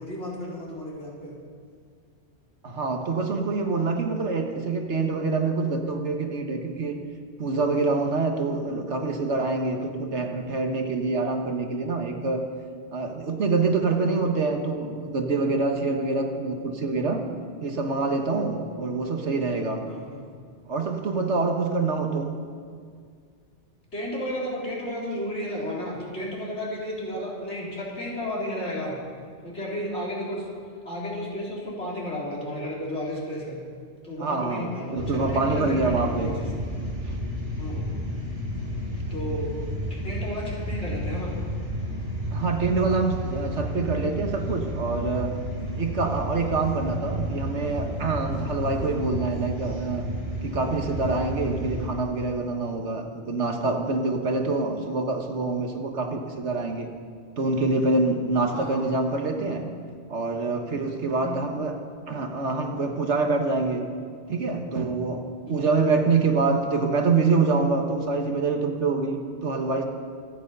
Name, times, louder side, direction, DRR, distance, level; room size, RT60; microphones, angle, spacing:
voice 1, 0.0-1.3 19.9-20.2 23.9-28.9 29.4-30.5 30.8-33.6 34.0-36.5 37.6-37.9 39.1-39.5 39.9-41.4 58.5-58.8 61.2-61.4 65.5-65.6, equal, 70° left, -5 dB, 4.2 m, -33 dB
voice 2, 2.6-7.0 7.4-12.5 12.9-17.3 17.6-19.9 20.7-22.4 34.2-36.3 37.1-37.2 42.3-45.4 45.8-50.1 50.4-56.9 57.4-59.7 60.1-61.8 62.1-63.9 64.3-69.8, right 3 dB, 75° right, 4 dB, 1.8 m, -26 dB
sound 1, 35.0-51.9, equal, 60° right, 4.7 m, -31 dB
26.0 x 9.3 x 5.5 m, 2.1 s
omnidirectional pair, 1.2 m